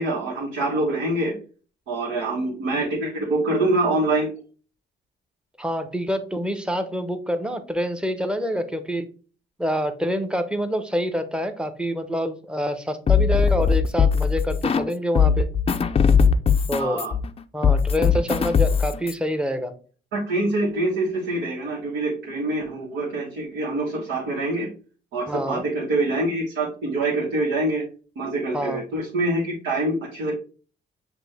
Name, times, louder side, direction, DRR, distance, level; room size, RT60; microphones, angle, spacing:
voice 1, 0.0-1.3 1.9-4.3 16.8-17.1 20.1-24.7 25.1-27.8 28.1-30.3, right 2 dB, 90° right, -6 dB, 1.5 m, -25 dB
voice 2, 5.6-9.1 9.6-15.5 16.7-17.0 17.5-19.7 25.3-25.6 28.5-28.8, equal, 5° right, 8 dB, 0.7 m, -26 dB
sound 1, 13.1-14.9 15.1-19.1, left 6 dB, 30° left, 0.4 m, -19 dB
6.1 x 2.6 x 3.4 m, 0.39 s
cardioid pair, 90°, 20 cm